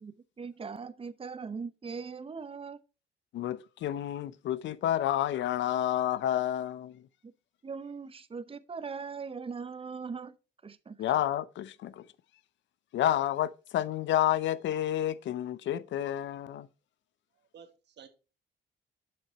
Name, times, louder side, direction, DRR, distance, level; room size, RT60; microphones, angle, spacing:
voice 1, 0.0-2.8 7.6-10.3 10.6-11.0, right 5 dB, 30° right, 0.7 m, -40 dB
voice 2, 3.3-7.0 11.0-12.1 12.9-16.7, left 12 dB, 70° left, 0.6 m, -30 dB
voice 3, 17.3-18.1, right 7 dB, 60° right, 1.5 m, -53 dB
7.5 x 6.0 x 4.3 m
cardioid pair, 90°, 20 cm